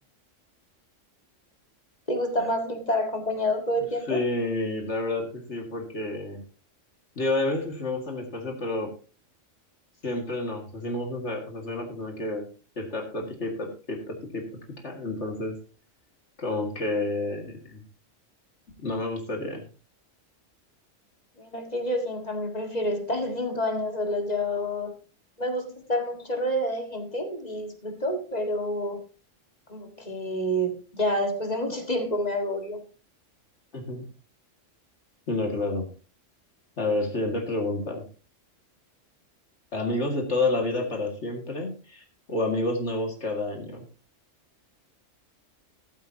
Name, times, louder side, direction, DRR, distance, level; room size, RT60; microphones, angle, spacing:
voice 1, 2.1-4.2 21.4-25.0 25.4-29.0 29.7-32.8, equal, 30° left, 5 dB, 1.9 m, -28 dB
voice 2, 4.1-6.4 7.2-8.9 10.0-12.5 12.8-14.4 14.8-15.6 16.4-17.8 18.8-19.6 33.7-34.0 35.3-35.9 36.8-38.0 39.7-43.9, left 2 dB, 60° left, 3 dB, 2.4 m, -29 dB
13.5 x 12.5 x 2.8 m, 0.34 s
omnidirectional pair, 1.3 m